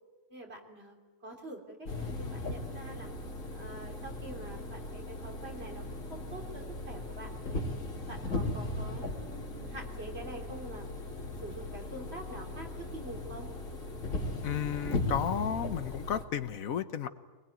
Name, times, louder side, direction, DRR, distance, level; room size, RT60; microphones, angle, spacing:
voice 1, 0.3-1.0 1.2-3.1 3.5-7.6 8.1-10.9 11.4-13.5, right 2 dB, 50° right, 1 dB, 3.4 m, -46 dB
sound 1, 1.9-16.2, left 2 dB, 70° left, 2.8 m, -38 dB
voice 2, 14.4-17.1, left 8 dB, 85° left, 12 dB, 1.4 m, -33 dB
24.0 x 21.0 x 9.2 m, 1.3 s
omnidirectional pair, 1.4 m